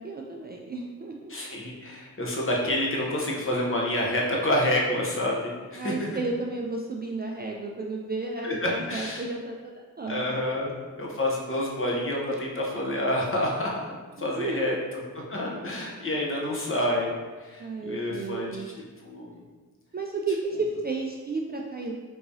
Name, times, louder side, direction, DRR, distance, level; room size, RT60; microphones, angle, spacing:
voice 1, 0.0-1.3 5.7-10.2 14.2-14.7 17.6-18.7 19.9-21.9, right 3 dB, 30° right, 0 dB, 0.3 m, -32 dB
voice 2, 1.3-5.9 8.4-9.2 10.1-10.7 11.0-13.9 14.2-14.7 15.3-17.1 17.4-18.5 19.0-19.3, left 1 dB, 35° left, -2 dB, 0.9 m, -28 dB
3.5 x 3.0 x 2.6 m, 1.4 s
cardioid pair, 50°, 37 cm